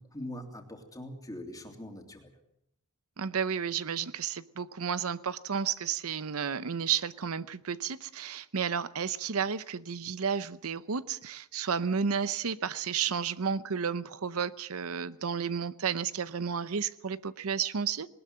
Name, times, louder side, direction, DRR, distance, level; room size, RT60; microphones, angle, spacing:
voice 1, 0.0-2.3, left 1 dB, 15° left, 3 dB, 3.1 m, -42 dB
voice 2, 3.2-18.1, right 7 dB, 70° right, 15 dB, 0.7 m, -32 dB
20.0 x 19.0 x 7.5 m, 0.75 s
head